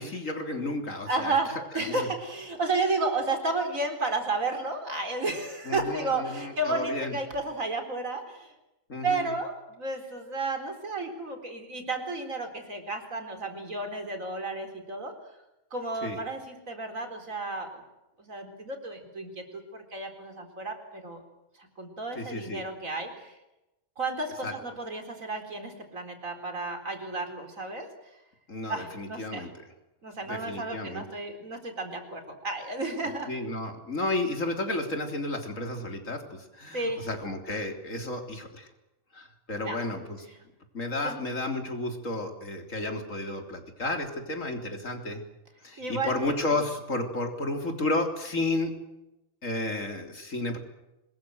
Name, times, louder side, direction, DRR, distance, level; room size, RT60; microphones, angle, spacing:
voice 1, 0.0-1.3 1.8-2.1 5.7-7.2 8.9-9.3 16.0-16.2 22.2-22.6 24.4-24.5 28.5-29.5 30.3-31.0 33.3-38.7 39.1-40.2 40.7-45.2 45.6-48.7 49.4-50.6, left 2 dB, 75° left, 4 dB, 4.0 m, -32 dB
voice 2, 1.1-8.5 9.0-15.1 15.7-17.8 18.2-21.2 21.6-23.4 24.0-27.9 28.7-29.5 30.0-33.3 36.7-37.0 39.6-39.8 41.0-41.2 45.8-46.6, right 3 dB, 85° right, 5 dB, 4.6 m, -32 dB
25.5 x 22.0 x 7.9 m, 0.95 s
omnidirectional pair, 1.4 m